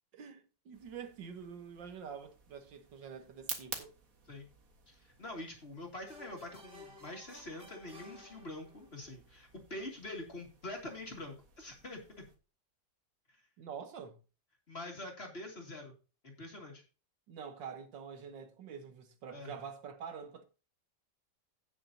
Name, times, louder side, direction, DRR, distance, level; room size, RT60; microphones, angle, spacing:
voice 1, 0.1-3.9 13.6-14.2 17.3-20.4, right 7 dB, 85° right, 1.9 m, -46 dB
sound 1, 0.7-12.4, right 4 dB, 50° right, 2.0 m, -51 dB
voice 2, 4.9-12.3 14.7-15.9 16.2-16.8 19.3-19.5, left 1 dB, 35° left, 2.4 m, -45 dB
sound 2, 6.1-9.0, left 1 dB, 35° right, 1.7 m, -55 dB
17.0 x 6.1 x 2.8 m
omnidirectional pair, 2.0 m